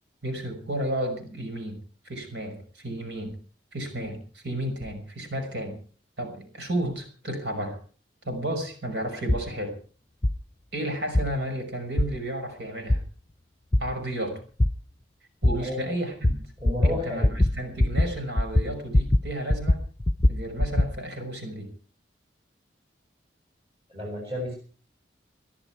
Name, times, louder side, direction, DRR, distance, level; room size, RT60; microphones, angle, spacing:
voice 1, 0.2-3.4 3.7-5.8 6.2-7.8 8.2-9.7 10.7-13.0 13.8-14.4 15.4-16.4 16.8-19.8 20.3-21.7, right 1 dB, 70° right, 5 dB, 6.0 m, -32 dB
sound 1, 9.3-9.4 10.2-10.3 11.1-11.3 12.0-12.1 12.9-13.0 13.7-13.8 14.6-14.7 15.4-15.5 16.2-16.4 16.6-17.0 17.2-17.5 17.8-18.1 18.4-19.2 19.5-20.9, left 1 dB, 20° left, 0.8 m, -21 dB
voice 2, 16.6-17.3 23.9-24.6, left 1 dB, 30° right, -1 dB, 7.4 m, -31 dB
22.5 x 13.0 x 4.7 m, 0.41 s
head